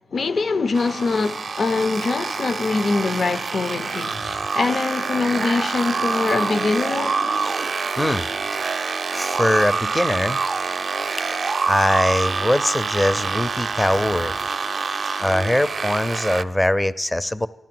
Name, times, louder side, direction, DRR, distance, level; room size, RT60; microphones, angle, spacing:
voice 1, 0.1-7.4, left 3 dB, 60° left, 0.7 m, -23 dB
sound 1, 0.7-16.4, right 4 dB, 55° right, 0.5 m, -26 dB
voice 2, 5.2-5.7 7.6-8.3 9.1-10.4 10.8-11.3 11.6-14.4 15.2-17.5, left 1 dB, 10° left, 0.5 m, -22 dB
15.0 x 12.0 x 7.7 m
cardioid pair, 90°, 0 cm